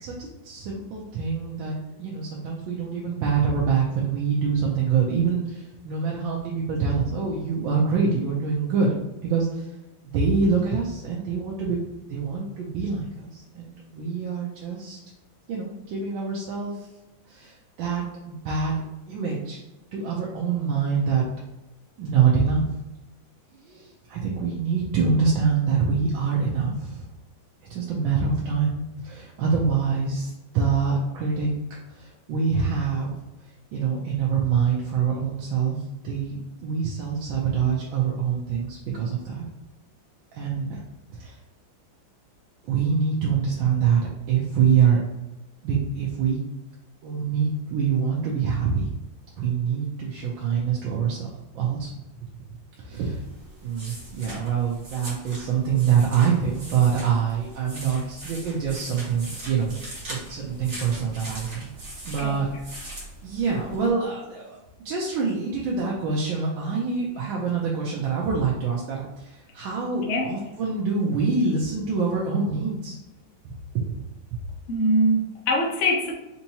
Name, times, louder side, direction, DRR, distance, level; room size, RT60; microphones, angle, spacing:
voice 1, 0.0-8.9 9.2-9.7 10.1-15.0 15.5-16.9 17.3-19.6 19.9-21.3 22.0-22.8 23.5-27.1 27.7-31.5 31.9-33.1 33.7-39.4 40.3-40.8 41.1-41.4 42.6-45.0 45.6-46.4 47.0-48.9 49.4-51.3 51.5-51.9 52.4-52.5 52.8-53.2 53.6-61.7 62.0-62.5 63.2-64.6 64.8-73.0 73.4-74.0 74.3-74.4, right 6 dB, 80° right, -3 dB, 1.4 m, -25 dB
sound 1, 52.9-63.9, right 1 dB, 40° right, 1.2 m, -41 dB
voice 2, 70.0-70.3 74.7-76.1, equal, 60° left, 0 dB, 0.7 m, -23 dB
4.4 x 2.9 x 2.7 m, 1.0 s
omnidirectional pair, 2.1 m